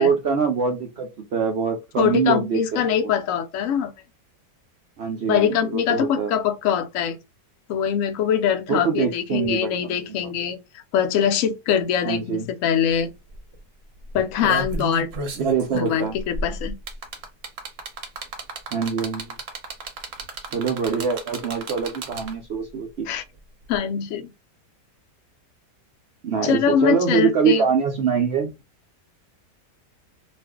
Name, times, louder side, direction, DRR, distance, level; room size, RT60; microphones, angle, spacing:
voice 1, 0.0-2.8 5.0-6.3 8.7-10.3 12.0-12.5 15.4-16.1 18.7-19.3 20.5-23.1 26.2-28.5, right 6 dB, 90° right, 0.5 m, -24 dB
voice 2, 2.0-3.9 5.3-7.2 7.7-10.6 10.9-13.1 14.1-15.1 15.7-16.7 23.1-23.2 23.7-24.3 26.4-27.6, left 8 dB, 70° left, 0.8 m, -23 dB
sound 1, 12.9-13.0 13.3-13.5 14.1-22.5 23.7-23.8, right 2 dB, 55° right, 0.8 m, -32 dB
2.5 x 2.4 x 3.4 m
omnidirectional pair, 1.8 m